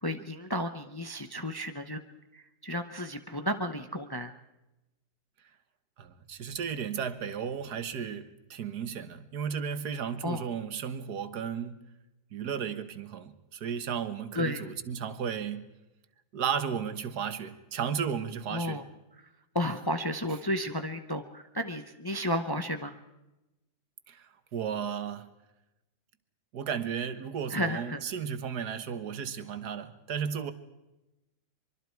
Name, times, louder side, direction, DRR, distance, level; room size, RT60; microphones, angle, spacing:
voice 1, 0.0-2.0 2.3-4.3 10.2-10.4 14.3-14.7 18.5-18.8 19.5-23.0 27.5-28.0, equal, 20° left, 0.7 m, -32 dB
voice 2, 6.0-11.8 12.3-15.7 16.3-18.8 24.1-25.3 26.5-30.5, right 7 dB, 75° right, 1.7 m, -34 dB
24.0 x 24.0 x 4.6 m
omnidirectional pair, 1.7 m